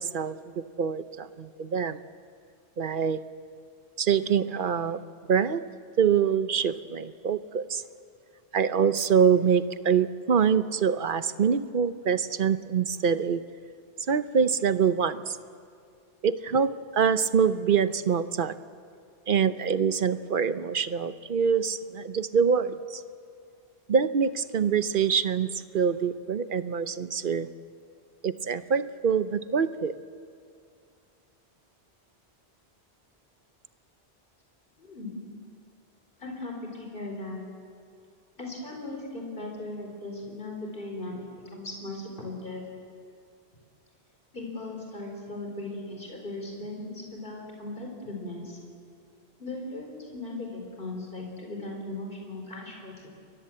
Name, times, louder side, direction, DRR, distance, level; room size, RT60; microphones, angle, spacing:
voice 1, 0.0-2.0 2.8-3.2 4.0-5.6 6.0-7.8 8.5-13.4 14.1-15.4 16.2-18.6 19.3-23.0 23.9-27.5 28.2-29.9, right 7 dB, 55° right, 13 dB, 0.9 m, -25 dB
voice 2, 34.8-35.3 36.2-37.4 38.4-41.2 41.5-42.6 44.3-48.6 49.4-53.1, left 2 dB, 55° left, 1 dB, 4.4 m, -38 dB
29.5 x 22.0 x 7.7 m, 2.3 s
omnidirectional pair, 1.1 m